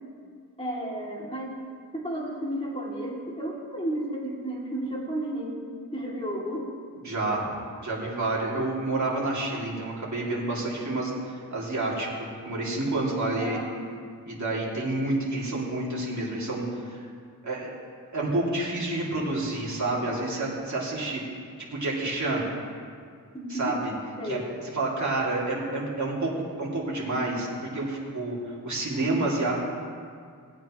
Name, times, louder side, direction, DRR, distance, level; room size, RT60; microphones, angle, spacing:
voice 1, 0.6-1.7 1.9-5.6 5.9-6.7 13.2-13.8 23.3-23.7 24.2-24.4, right 1 dB, 15° left, -5 dB, 2.6 m, -32 dB
voice 2, 7.0-7.5 7.8-12.1 12.4-13.6 14.3-17.1 17.4-17.7 18.1-21.2 21.7-22.4 23.5-23.9 24.2-24.4 24.7-27.5 27.7-29.5, right 2 dB, 50° right, -5 dB, 2.7 m, -29 dB
19.0 x 8.7 x 3.1 m, 2.1 s
wide cardioid pair, 80°, 36 cm